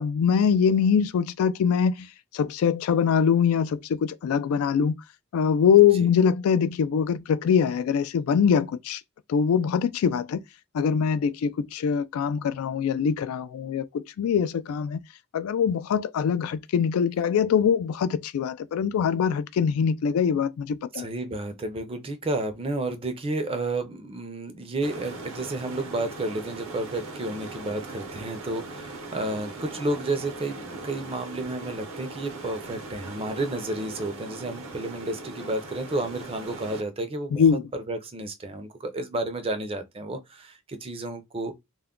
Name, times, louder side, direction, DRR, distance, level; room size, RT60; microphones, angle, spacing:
voice 1, 0.0-2.1 2.3-4.9 5.3-9.0 9.3-10.4 10.7-15.0 15.3-21.1 37.3-37.6, left 7 dB, 80° left, 0.3 m, -23 dB
voice 2, 5.8-6.1 20.9-41.5, right 2 dB, 25° right, 0.5 m, -31 dB
sound 1, 24.8-36.8, right 3 dB, 70° right, 0.7 m, -39 dB
2.3 x 2.1 x 3.6 m
head